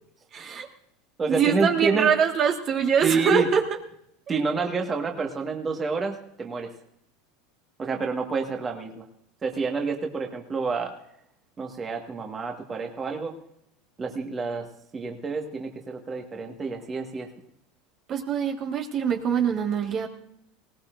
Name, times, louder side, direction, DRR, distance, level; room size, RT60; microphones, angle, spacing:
voice 1, 0.3-0.7 1.3-3.6 18.1-20.1, right 7 dB, 40° right, 2 dB, 1.7 m, -24 dB
voice 2, 1.2-2.1 3.0-3.5 4.3-6.7 7.8-9.0 9.4-10.9 11.6-13.3 14.0-14.7 14.9-17.3, right 4 dB, 25° right, 2 dB, 1.6 m, -28 dB
20.0 x 17.5 x 2.6 m, 0.73 s
supercardioid pair, 120°, 0 cm